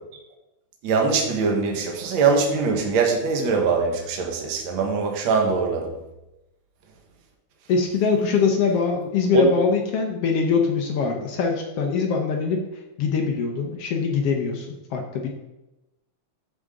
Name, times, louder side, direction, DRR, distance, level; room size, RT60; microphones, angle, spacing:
voice 1, 0.8-5.9 9.3-9.4, right 4 dB, 50° right, 1 dB, 1.6 m, -22 dB
voice 2, 7.7-12.6 13.0-15.3, left 5 dB, 70° left, 2 dB, 1.5 m, -23 dB
13.5 x 5.1 x 3.7 m, 0.98 s
omnidirectional pair, 3.7 m